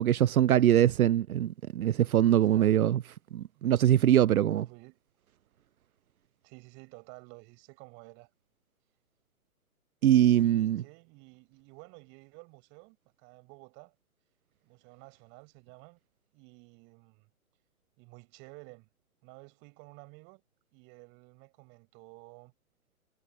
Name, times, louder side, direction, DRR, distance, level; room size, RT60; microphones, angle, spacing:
voice 1, 0.0-3.0 3.3-4.6 10.0-10.8, right 11 dB, 80° right, 0.5 m, -23 dB
voice 2, 2.3-3.0 3.3-3.7 4.5-5.0 6.4-8.3 10.4-14.0 14.6-16.0 16.3-17.3 18.0-18.9 19.2-20.4 20.7-22.5, right 30 dB, 25° right, 7.0 m, -53 dB
hypercardioid pair, 135°, 42 cm